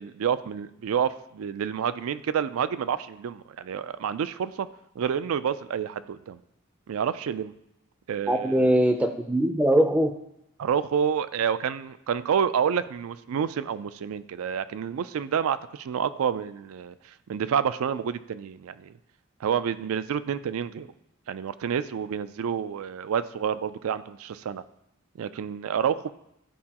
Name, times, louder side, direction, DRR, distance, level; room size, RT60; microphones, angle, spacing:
voice 1, 0.0-4.7 5.0-6.4 6.9-7.5 8.1-8.7 10.6-16.9 17.3-18.9 19.4-20.9 21.3-24.6 25.2-26.1, right 7 dB, 70° right, 14 dB, 0.3 m, -28 dB
voice 2, 8.3-10.1, right 1 dB, 5° right, 6 dB, 0.4 m, -21 dB
11.5 x 4.6 x 2.9 m, 0.81 s
head